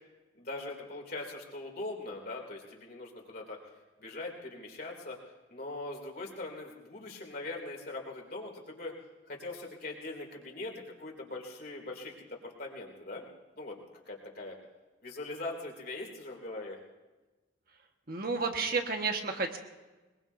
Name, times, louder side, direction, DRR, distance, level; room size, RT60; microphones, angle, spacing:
voice 1, 0.3-3.6 4.0-5.2 5.5-8.9 9.3-13.2 13.6-14.5 15.0-16.8, left 2 dB, 50° left, 0 dB, 2.9 m, -41 dB
voice 2, 18.1-19.6, right 4 dB, 50° right, 4 dB, 1.5 m, -31 dB
22.5 x 21.5 x 2.7 m, 1.2 s
head